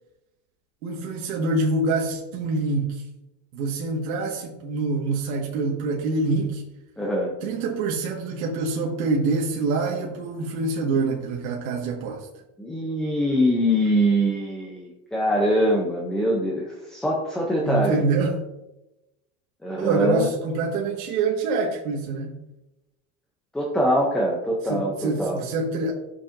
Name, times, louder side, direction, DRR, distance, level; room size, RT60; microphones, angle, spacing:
voice 1, 0.8-3.0 3.5-6.6 7.4-12.3 17.6-18.4 19.8-22.3 24.7-25.9, right 3 dB, 90° right, -1 dB, 1.5 m, -25 dB
voice 2, 7.0-7.4 12.6-17.9 19.6-20.3 23.5-25.4, equal, ahead, -3 dB, 0.3 m, -23 dB
11.5 x 7.1 x 2.5 m, 0.98 s
cardioid pair, 165°, 41 cm